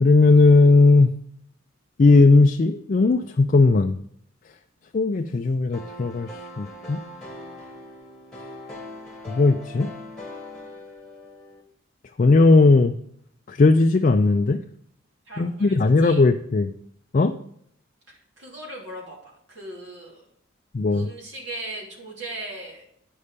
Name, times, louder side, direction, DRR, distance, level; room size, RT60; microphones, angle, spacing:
voice 1, 0.0-1.1 2.0-4.0 4.9-6.3 6.6-7.0 9.3-9.9 12.2-12.9 13.5-14.6 15.4-16.7 17.1-17.4 20.7-21.1, left 3 dB, 40° left, 6 dB, 0.3 m, -17 dB
sound 1, 5.7-11.6, left 1 dB, 5° left, 1.8 m, -41 dB
voice 2, 15.3-16.2 18.1-20.2 20.9-22.9, right 1 dB, 60° right, -3 dB, 3.0 m, -38 dB
9.7 x 5.4 x 5.1 m, 0.70 s
head